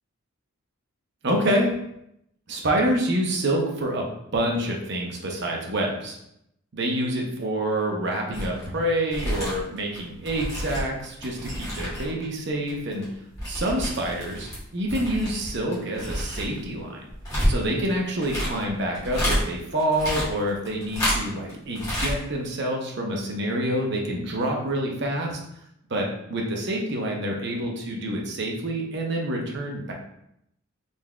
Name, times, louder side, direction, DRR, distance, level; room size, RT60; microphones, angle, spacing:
voice 1, 1.2-1.7 2.5-4.1 4.3-6.2 6.7-13.1 13.5-17.0 17.4-25.3 25.9-29.9, right 1 dB, 55° right, 0 dB, 0.7 m, -27 dB
sound 1, 8.3-8.6 9.0-12.2 12.5-14.6 14.9-19.4 19.8-21.5 21.8-22.2 22.5-22.6, equal, 20° left, 1.4 m, -29 dB
3.9 x 3.3 x 2.3 m, 0.78 s
head